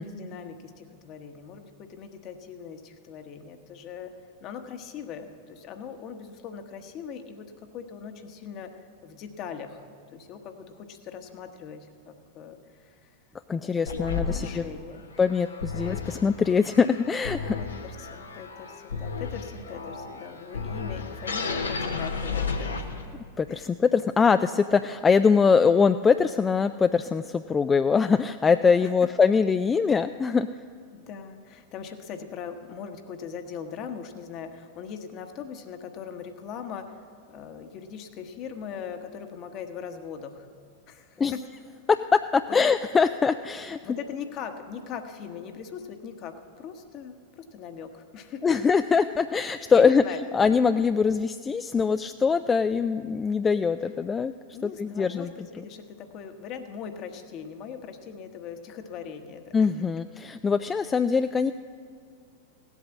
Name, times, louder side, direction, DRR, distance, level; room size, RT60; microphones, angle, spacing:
voice 1, 0.0-4.1 4.4-13.2 13.5-15.1 17.6-23.0 23.5-23.7 28.8-29.1 30.9-40.5 40.9-41.4 42.5-42.7 43.8-48.6 49.7-50.2 54.5-60.1, left 7 dB, 45° left, 7 dB, 1.2 m, -40 dB
voice 2, 13.5-14.6 15.2-17.6 23.4-30.5 41.2-41.3 41.9-43.8 48.4-50.0 50.3-54.3 54.6-55.3 55.6-55.7 59.5-61.5, left 5 dB, 20° left, 10 dB, 0.3 m, -23 dB
sound 1, 13.9-23.3, left 4 dB, 85° left, 1.0 m, -33 dB
16.0 x 8.2 x 7.2 m, 2.1 s
hypercardioid pair, 95°, 0 cm